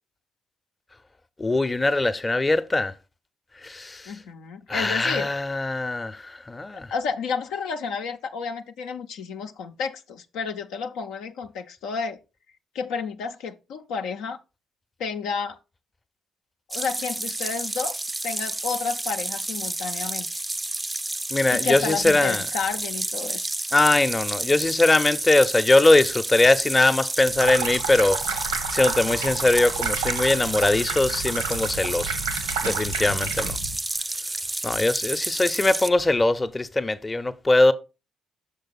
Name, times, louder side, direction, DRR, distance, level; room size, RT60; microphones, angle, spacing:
voice 1, 1.4-2.9 3.6-4.1 4.7-6.9 21.3-22.4 23.7-28.2 28.7-32.2 32.6-33.6 34.6-37.7, left 2 dB, 25° left, 0.7 m, -21 dB
voice 2, 4.1-5.3 6.7-12.2 12.7-14.4 15.0-15.6 16.7-20.3 21.5-23.5, left 5 dB, 70° left, 0.6 m, -31 dB
sound 1, 16.7-35.9, right 2 dB, 15° right, 0.5 m, -30 dB
Water tap faucet / Sink (filling or washing), 27.3-33.8, right 5 dB, 90° right, 1.1 m, -31 dB
6.5 x 5.4 x 4.1 m
hypercardioid pair, 45°, 0 cm